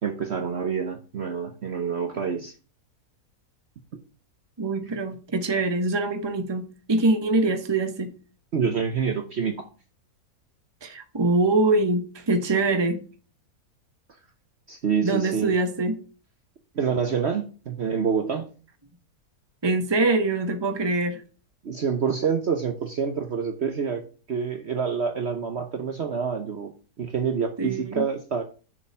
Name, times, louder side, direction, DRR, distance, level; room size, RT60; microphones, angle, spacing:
voice 1, 0.0-2.5 8.5-9.7 14.7-15.5 16.7-18.5 21.6-26.7 27.0-28.4, right 6 dB, 50° right, 1.0 m, -27 dB
voice 2, 4.6-8.1 10.8-13.0 15.0-16.0 19.6-21.2 27.6-28.0, right 2 dB, 20° right, 1.0 m, -24 dB
7.0 x 5.2 x 7.2 m
omnidirectional pair, 1.6 m